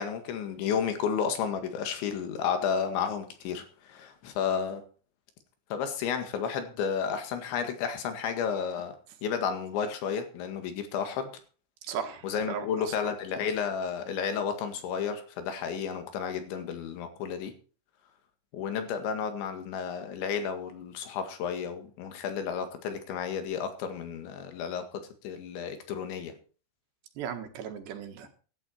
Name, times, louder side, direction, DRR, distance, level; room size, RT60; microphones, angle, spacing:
voice 1, 0.0-4.8 5.7-9.0 9.2-11.3 12.2-17.5 18.5-26.4, left 7 dB, 80° left, 7 dB, 4.2 m, -32 dB
voice 2, 11.9-13.1 27.2-28.3, right 7 dB, 70° right, 6 dB, 3.6 m, -37 dB
16.0 x 12.0 x 4.5 m, 0.38 s
omnidirectional pair, 5.2 m